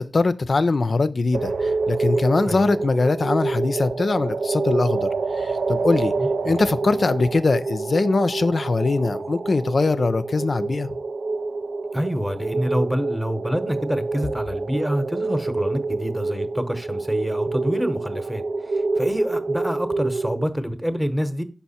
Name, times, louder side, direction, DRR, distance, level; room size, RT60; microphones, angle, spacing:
voice 1, 0.0-5.1 5.4-6.1 6.4-10.9, left 3 dB, 65° left, 0.4 m, -22 dB
sound 1, 1.3-20.5, right 3 dB, 90° right, 0.4 m, -27 dB
voice 2, 6.2-6.5 11.9-18.4 18.7-21.4, equal, 5° right, 0.9 m, -27 dB
5.6 x 4.6 x 4.2 m
cardioid pair, 40°, 0 cm